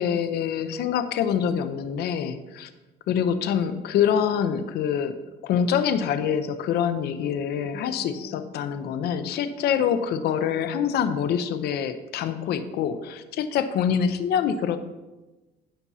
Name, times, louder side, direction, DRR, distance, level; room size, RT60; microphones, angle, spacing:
voice 1, 0.0-2.7 3.1-5.1 5.4-14.8, left 8 dB, 75° left, 10 dB, 0.7 m, -25 dB
sound 1, 7.5-12.5, left 4 dB, 20° right, 3.2 m, -50 dB
15.5 x 6.0 x 2.8 m, 1.1 s
cardioid pair, 110°, 17 cm